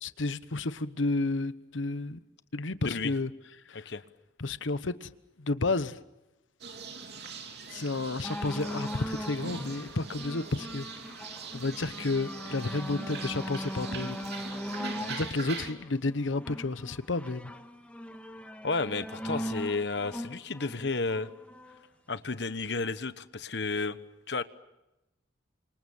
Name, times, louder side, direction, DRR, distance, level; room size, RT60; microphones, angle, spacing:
voice 1, 0.0-2.2 2.5-3.3 3.7-3.9 4.4-5.1 5.4-6.0 7.7-10.9 11.5-14.2 14.7-14.8 15.1-17.5, left 3 dB, 85° left, 1.0 m, -31 dB
voice 2, 2.8-3.1 3.8-4.0 18.6-21.3 22.1-24.0 24.3-24.4, left 3 dB, 60° left, 1.1 m, -32 dB
sound 1, 6.6-15.7, right 4 dB, 60° right, 3.1 m, -42 dB
sound 2, 8.2-21.8 22.6-22.7, equal, 5° left, 1.5 m, -40 dB
29.5 x 26.0 x 7.2 m
head